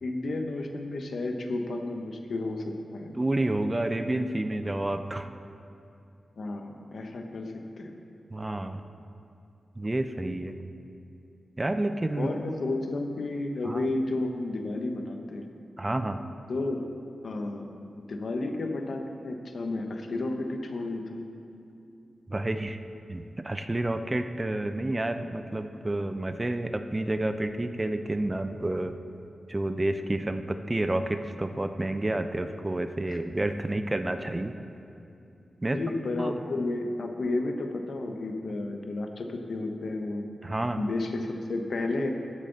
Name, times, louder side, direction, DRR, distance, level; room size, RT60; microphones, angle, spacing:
voice 1, 0.0-3.1 6.4-8.0 12.2-15.5 16.5-16.8 17.2-21.3 33.1-33.2 35.7-40.3 40.8-42.1, left 2 dB, 65° left, 4 dB, 0.9 m, -32 dB
voice 2, 3.1-5.3 8.3-8.8 9.8-10.5 11.6-12.3 13.6-13.9 15.8-16.2 22.3-22.8 23.1-29.0 29.5-34.5 35.6-35.8 36.2-36.4 40.4-40.8, right 1 dB, 20° right, 9 dB, 0.4 m, -29 dB
13.5 x 7.5 x 4.0 m, 2.7 s
wide cardioid pair, 100°, 0 cm